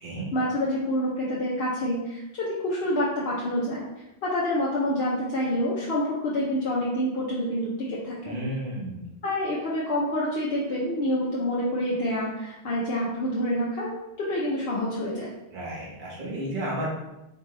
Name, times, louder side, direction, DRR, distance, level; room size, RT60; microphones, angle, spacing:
voice 1, 0.3-3.8 4.2-8.4 9.2-15.3, left 1 dB, 70° left, -6 dB, 1.0 m, -27 dB
voice 2, 8.2-9.0 15.5-16.9, right 1 dB, 50° right, -4 dB, 1.2 m, -32 dB
4.2 x 3.3 x 3.2 m, 0.94 s
omnidirectional pair, 1.1 m